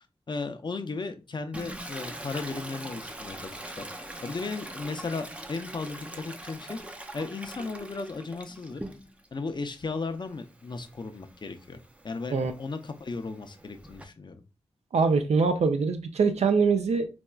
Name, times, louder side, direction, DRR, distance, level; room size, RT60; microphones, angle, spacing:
voice 1, 0.3-6.8 7.1-8.8 9.3-11.8 12.0-14.4, left 3 dB, 45° left, 0.5 m, -36 dB
Toilet flush, 1.5-9.3 9.7-14.0, right 1 dB, 10° right, 0.4 m, -43 dB
voice 2, 14.9-17.1, right 5 dB, 80° right, 0.4 m, -23 dB
4.1 x 2.3 x 2.2 m
wide cardioid pair, 75°, 11 cm